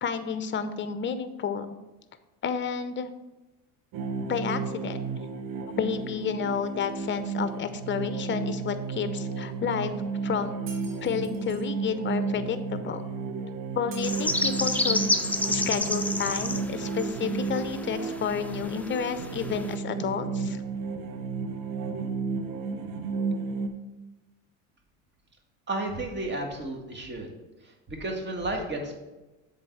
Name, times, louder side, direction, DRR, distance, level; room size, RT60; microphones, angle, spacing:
voice 1, 0.0-1.7 2.4-3.1 4.2-5.0 5.8-9.9 10.2-10.6 11.0-13.0 13.7-15.0 15.5-20.6, left 7 dB, 30° left, 11 dB, 0.7 m, -30 dB
sound 1, 3.9-23.7, right 4 dB, 55° right, 1.0 m, -33 dB
Shatter, 10.7-11.7 13.9-15.0, right 4 dB, 75° right, 1.8 m, -49 dB
sound 2, 14.0-19.7, left 2 dB, 5° left, 0.4 m, -30 dB
voice 2, 25.7-27.3 27.6-28.9, right 2 dB, 25° right, 2 dB, 1.8 m, -32 dB
7.3 x 4.0 x 5.8 m, 1.1 s
supercardioid pair, 85°, 40 cm